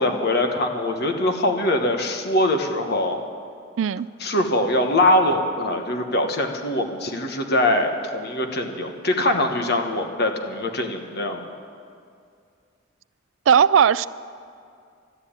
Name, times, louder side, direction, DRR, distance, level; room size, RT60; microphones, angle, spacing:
voice 1, 0.0-3.2 4.2-11.5, left 1 dB, 55° left, 4 dB, 1.3 m, -22 dB
voice 2, 3.8-4.1 13.5-14.1, right 7 dB, 65° right, 17 dB, 0.3 m, -17 dB
12.5 x 12.0 x 8.7 m, 2.3 s
head